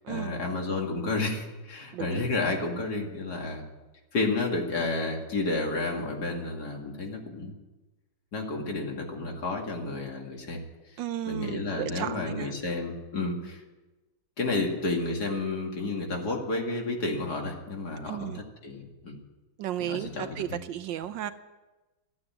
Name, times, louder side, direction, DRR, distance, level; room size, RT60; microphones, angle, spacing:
voice 1, 0.1-3.6 4.1-7.5 8.3-10.6 10.9-11.0 11.3-13.6 14.4-19.2 19.8-20.6, left 3 dB, 55° left, 1 dB, 2.7 m, -31 dB
voice 2, 1.9-2.2 11.0-12.5 18.0-18.4 19.6-21.3, right 11 dB, 75° right, 10 dB, 1.3 m, -34 dB
14.0 x 8.9 x 9.5 m, 1.1 s
omnidirectional pair, 2.2 m